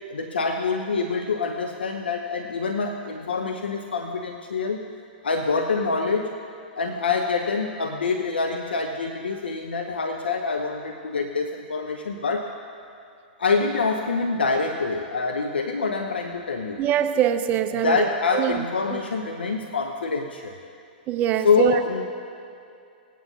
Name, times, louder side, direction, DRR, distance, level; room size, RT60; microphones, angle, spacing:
voice 1, 0.1-4.8 5.2-6.3 6.8-12.5 13.4-16.8 17.8-20.5 21.4-22.0, left 4 dB, 90° left, 5 dB, 0.7 m, -25 dB
voice 2, 16.8-18.0 18.3-18.6 18.9-19.0 21.1-21.8, right 10 dB, 30° right, 8 dB, 0.6 m, -23 dB
20.0 x 9.3 x 2.8 m, 2.5 s
hypercardioid pair, 120°, 5 cm